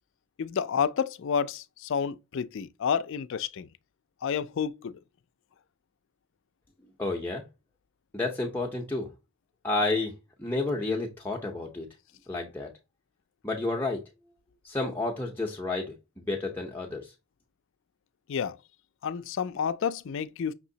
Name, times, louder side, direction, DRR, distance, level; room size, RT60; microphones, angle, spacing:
voice 1, 0.4-3.7 4.2-5.0 18.3-18.6 19.0-20.5, left 7 dB, 60° left, 0.4 m, -30 dB
voice 2, 7.0-7.4 8.1-9.1 9.6-10.1 10.4-11.9 12.3-12.7 13.4-14.0 14.6-17.1, left 2 dB, 10° left, 0.7 m, -30 dB
6.2 x 3.0 x 2.7 m
head